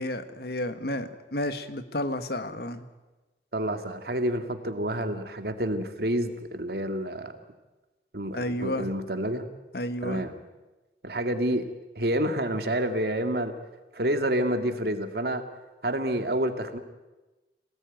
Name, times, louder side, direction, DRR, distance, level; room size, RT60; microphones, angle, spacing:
voice 1, 0.0-2.8 8.3-8.9 9.7-10.2, left 1 dB, 60° left, 10 dB, 1.7 m, -31 dB
voice 2, 3.5-7.3 8.1-9.5 10.0-10.4 11.0-11.7 12.0-13.5 13.9-15.4 15.8-16.8, right 1 dB, 60° right, 7 dB, 2.2 m, -28 dB
26.5 x 18.5 x 9.3 m, 1.1 s
head